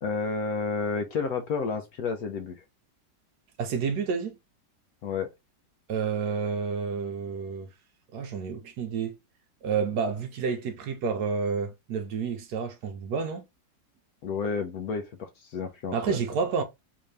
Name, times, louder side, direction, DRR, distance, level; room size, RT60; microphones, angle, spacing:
voice 1, 0.0-2.6 5.0-5.3 14.2-16.2, left 5 dB, 70° left, 0.9 m, -31 dB
voice 2, 3.6-4.3 5.9-7.7 8.1-9.1 9.6-13.4 15.9-16.6, right 5 dB, 70° right, 1.1 m, -29 dB
3.6 x 2.6 x 3.2 m
omnidirectional pair, 2.0 m